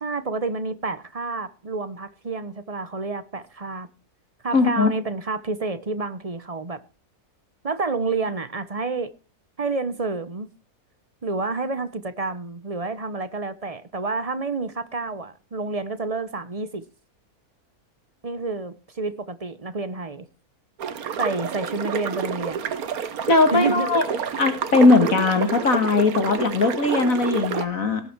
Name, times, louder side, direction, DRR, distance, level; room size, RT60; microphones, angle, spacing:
voice 1, 0.0-3.9 4.4-6.8 7.6-9.1 9.6-10.5 11.2-16.8 18.2-20.3 21.2-22.6 23.5-23.9, right 3 dB, 30° right, 0.8 m, -29 dB
voice 2, 4.5-4.9 23.3-24.0 24.4-28.0, left 3 dB, 60° left, 2.2 m, -19 dB
sound 1, 20.8-27.7, right 7 dB, 70° right, 1.5 m, -29 dB
18.0 x 7.0 x 4.5 m
omnidirectional pair, 1.6 m